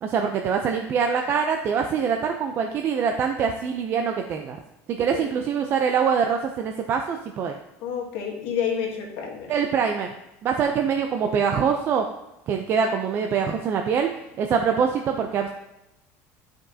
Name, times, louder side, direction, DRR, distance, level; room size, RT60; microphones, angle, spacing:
voice 1, 0.0-4.6 4.9-7.6 9.5-10.1 10.4-12.0 12.5-14.1 14.4-15.5, right 6 dB, 35° right, 4 dB, 0.5 m, -24 dB
voice 2, 5.0-5.3 7.8-9.5, left 7 dB, 80° left, -1 dB, 1.9 m, -29 dB
11.0 x 5.2 x 2.7 m, 0.93 s
cardioid pair, 155°, 7 cm